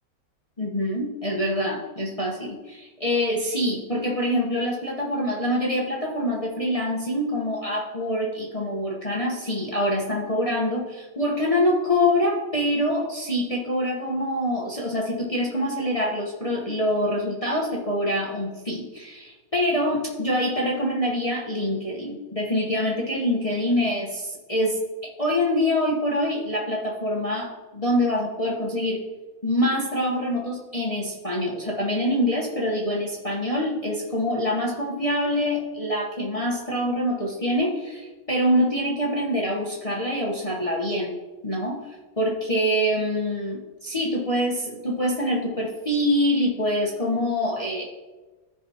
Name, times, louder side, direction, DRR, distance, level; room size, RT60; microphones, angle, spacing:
voice 1, 0.6-29.0 29.4-41.1 41.4-47.9, left 1 dB, 40° left, -3 dB, 0.4 m, -25 dB
14.0 x 5.1 x 2.8 m, 1.2 s
omnidirectional pair, 2.3 m